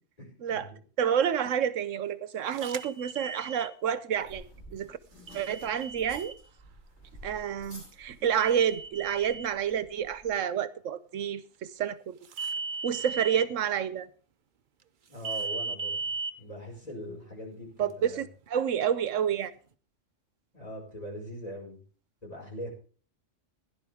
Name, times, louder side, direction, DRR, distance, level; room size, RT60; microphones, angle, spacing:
voice 1, 0.2-0.8 15.1-16.0 16.4-18.3 20.5-21.8 22.2-22.7, equal, 30° left, 5.3 m, -41 dB
voice 2, 1.0-4.4 4.7-5.0 5.3-6.3 7.2-12.2 12.8-14.1 17.8-19.5, right 8 dB, 80° right, 1.1 m, -29 dB
sound 1, 2.6-3.7 5.3-6.4 8.4-9.5 12.3-13.5 15.2-16.3, right 4 dB, 50° right, 0.7 m, -36 dB
sound 2, 4.2-10.4, equal, 65° left, 8.5 m, -52 dB
16.5 x 11.0 x 3.5 m
omnidirectional pair, 1.3 m